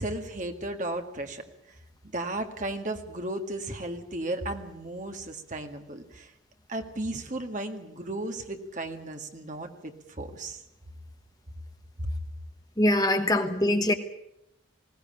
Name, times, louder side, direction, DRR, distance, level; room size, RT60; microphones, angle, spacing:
voice 1, 0.0-1.8 2.0-6.3 6.7-10.6 12.0-12.1, right 1 dB, 40° right, 5 dB, 1.9 m, -35 dB
voice 2, 12.8-13.9, left 1 dB, 20° left, 6 dB, 1.2 m, -23 dB
20.5 x 17.5 x 8.7 m, 0.85 s
head